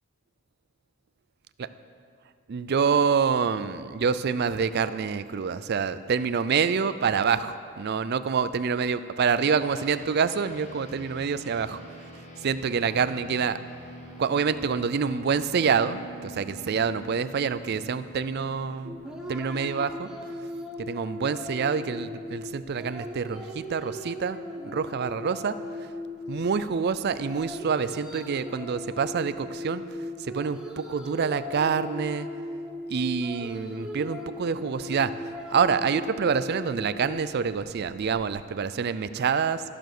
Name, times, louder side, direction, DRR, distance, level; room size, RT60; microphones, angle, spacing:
voice 1, 2.5-11.8 12.4-13.6 14.2-18.9 19.3-20.1 20.8-24.4 24.6-25.6 25.8-25.9 26.3-29.8 30.2-32.3 32.9-39.6, right 6 dB, 45° right, 14 dB, 0.4 m, -27 dB
sound 1, 9.6-21.3, right 1 dB, 30° left, 1.2 m, -46 dB
sound 2, 18.8-38.4, left 1 dB, 5° right, 0.8 m, -39 dB
14.0 x 6.9 x 6.1 m, 2.3 s
head